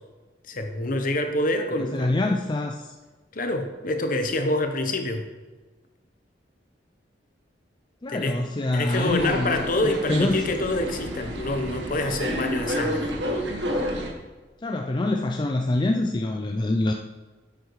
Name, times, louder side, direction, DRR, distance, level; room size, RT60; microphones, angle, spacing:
voice 1, 0.5-2.3 3.3-5.3 8.1-8.4 8.7-13.2, left 1 dB, 50° left, 6 dB, 1.1 m, -26 dB
voice 2, 1.9-2.9 8.0-10.5 14.6-16.9, left 2 dB, 25° left, 3 dB, 0.5 m, -25 dB
sound 1, 8.9-14.1, equal, 85° right, 1.5 m, -30 dB
10.5 x 7.6 x 4.8 m, 1.3 s
head